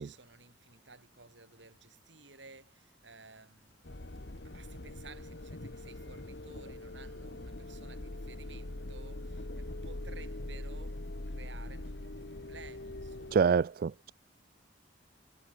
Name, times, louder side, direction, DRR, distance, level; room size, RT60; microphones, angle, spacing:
voice 1, 0.0-13.6, right 4 dB, 85° right, 7.5 m, -55 dB
sound 1, 3.8-13.4, left 1 dB, 70° left, 1.6 m, -42 dB
voice 2, 13.3-14.1, right 6 dB, 55° right, 0.3 m, -26 dB
head